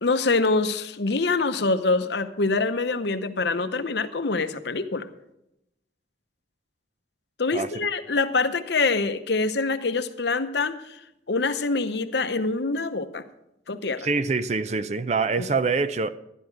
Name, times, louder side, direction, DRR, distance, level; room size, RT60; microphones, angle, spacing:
voice 1, 0.0-5.1 7.4-11.0 11.3-13.2 13.7-14.1 15.4-15.5, left 3 dB, 65° left, 10 dB, 0.8 m, -25 dB
voice 2, 14.0-16.1, right 4 dB, 35° right, 13 dB, 0.5 m, -25 dB
12.0 x 11.5 x 4.6 m, 0.85 s
head